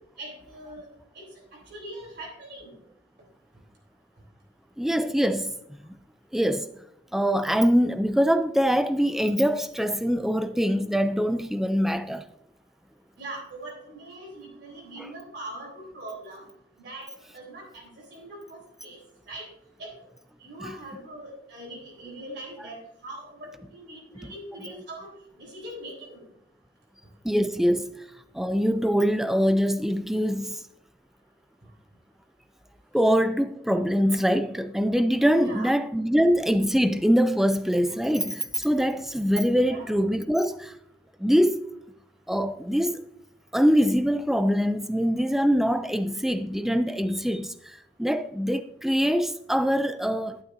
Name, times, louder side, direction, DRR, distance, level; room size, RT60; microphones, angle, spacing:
voice 1, 0.2-0.9 1.1-1.2 1.5-2.8 13.2-16.5 16.8-19.0 19.3-19.5 19.8-19.9 20.4-25.1 25.4-26.2 35.4-35.7 39.6-39.9, right 1 dB, 60° right, 3.6 m, -41 dB
voice 2, 4.8-5.5 5.8-6.0 6.3-6.7 7.1-12.2 27.2-27.9 28.3-30.6 32.9-40.7 41.2-41.6 42.3-43.0 43.5-50.4, equal, ahead, 0.4 m, -23 dB
11.0 x 9.1 x 2.6 m
head